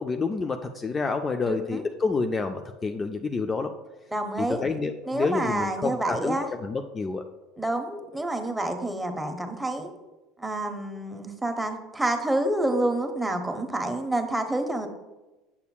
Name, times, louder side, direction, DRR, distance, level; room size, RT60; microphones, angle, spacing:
voice 1, 0.0-3.7 4.4-7.2, left 4 dB, 25° left, 6 dB, 0.4 m, -28 dB
voice 2, 1.5-1.8 4.1-4.6 5.1-6.5 7.6-9.9 10.4-14.9, right 1 dB, 5° right, 5 dB, 0.8 m, -28 dB
7.1 x 6.7 x 2.3 m, 1.1 s
hypercardioid pair, 75°, 0 cm